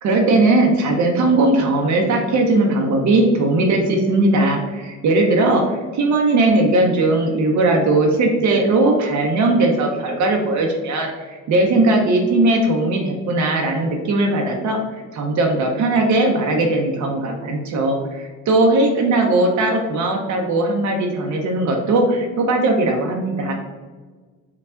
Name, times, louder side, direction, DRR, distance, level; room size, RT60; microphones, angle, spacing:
voice 1, 0.0-23.7, right 2 dB, 70° right, 1 dB, 0.7 m, -18 dB
4.6 x 2.3 x 3.7 m, 1.4 s
cardioid pair, 90°, 30 cm